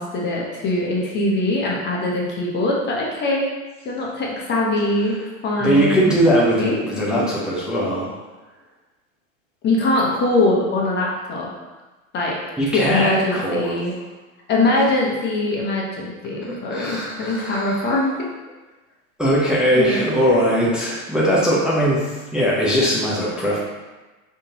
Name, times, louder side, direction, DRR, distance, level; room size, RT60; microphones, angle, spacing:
voice 1, 0.0-3.5 3.8-5.2 5.4-6.1 6.6-7.3 9.6-11.5 12.1-12.4 12.7-13.9 14.5-18.3 19.7-20.1, left 2 dB, 25° left, -3 dB, 0.8 m, -22 dB
voice 2, 5.6-8.1 12.6-13.8 16.4-17.8 19.2-23.6, equal, ahead, -7 dB, 0.7 m, -20 dB
5.1 x 3.6 x 2.8 m, 1.2 s
supercardioid pair, 125°, 41 cm